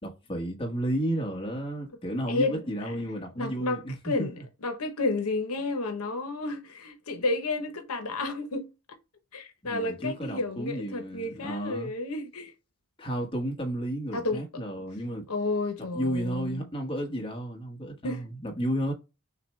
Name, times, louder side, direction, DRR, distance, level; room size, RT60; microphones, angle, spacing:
voice 1, 0.0-4.4 9.6-11.9 13.0-15.3 15.9-18.9, right 1 dB, 25° left, 1.2 m, -32 dB
voice 2, 2.3-2.9 3.4-4.3 4.6-8.7 9.3-12.5 14.1-14.4 14.7-14.8 15.3-16.7 18.0-18.2, left 2 dB, 75° left, 0.9 m, -31 dB
6.5 x 2.2 x 3.2 m
head